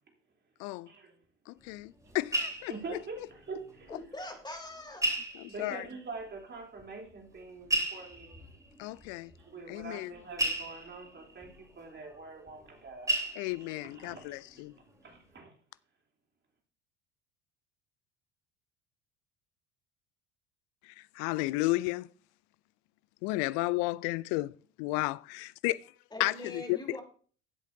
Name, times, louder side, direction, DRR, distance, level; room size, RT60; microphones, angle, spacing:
voice 1, 1.5-2.7 5.3-5.8 8.8-9.3 9.7-10.1 13.4-14.7 20.9-22.1 23.2-25.9 26.2-26.8, left 20 dB, 55° left, 0.5 m, -33 dB
sound 1, 1.6-4.0 4.2-4.3 5.0-6.0 6.8-6.9 7.6-12.8 13.1-14.0 14.5-14.8 15.0-15.2, right 1 dB, 10° right, 4.7 m, -35 dB
voice 2, 2.7-3.9 5.5-8.5 9.4-14.4 14.8-15.5, right 3 dB, 30° right, 3.6 m, -45 dB
voice 3, 3.9-5.1 26.1-27.0, left 2 dB, 10° left, 3.2 m, -42 dB
15.5 x 8.1 x 2.8 m
figure-of-eight pair, 65°, 35 cm